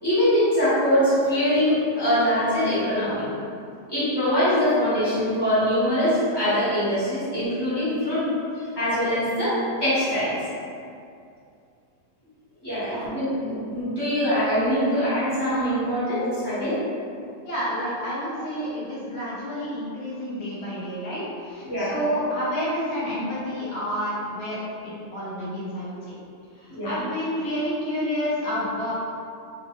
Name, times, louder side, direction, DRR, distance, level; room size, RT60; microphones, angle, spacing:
voice 1, 0.0-3.2 3.9-8.3 8.8-10.3 12.6-16.8 21.6-21.9 26.7-26.9, equal, 20° left, -14 dB, 1.0 m, -23 dB
voice 2, 17.4-26.1 26.6-28.9, equal, 75° left, -8 dB, 1.3 m, -29 dB
3.0 x 2.1 x 2.9 m, 2.4 s
omnidirectional pair, 1.7 m